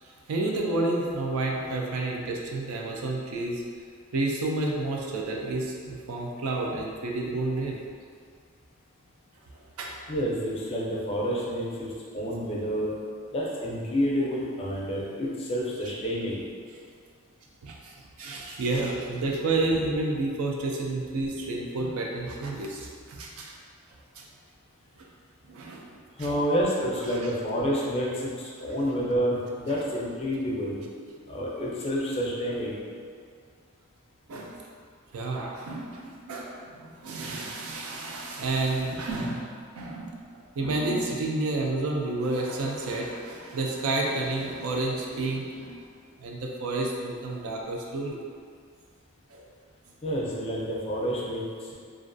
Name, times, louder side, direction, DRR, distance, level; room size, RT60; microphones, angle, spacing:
voice 1, 0.0-3.6 4.1-7.8 9.8-10.0 17.6-23.5 24.2-24.3 25.5-26.3 27.1-27.2 34.3-34.6 35.1-45.8 46.2-48.2 49.3-49.4, right 2 dB, 90° right, 0 dB, 0.4 m, -30 dB
voice 2, 10.1-11.9 12.1-12.9 13.3-16.4 26.2-28.3 28.6-30.8 31.3-32.8 50.0-51.4, equal, 30° left, -4 dB, 0.4 m, -28 dB
2.3 x 2.2 x 2.5 m, 2.1 s
head